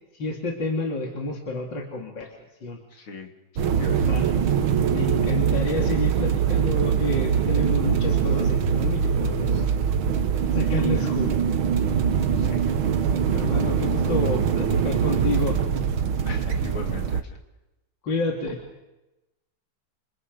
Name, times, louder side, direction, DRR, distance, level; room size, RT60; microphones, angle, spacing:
voice 1, 0.1-2.3 2.6-2.8 4.1-4.3 4.9-9.7 10.5-11.4 13.3-15.6 18.0-18.6, left 2 dB, 60° left, 0 dB, 3.6 m, -29 dB
voice 2, 2.9-4.2 12.4-12.7 16.3-17.4, left 3 dB, 80° left, 2 dB, 3.9 m, -40 dB
sound 1, 3.6-17.2, right 7 dB, 80° right, 2.0 m, -23 dB
28.5 x 28.0 x 5.4 m, 0.99 s
omnidirectional pair, 2.2 m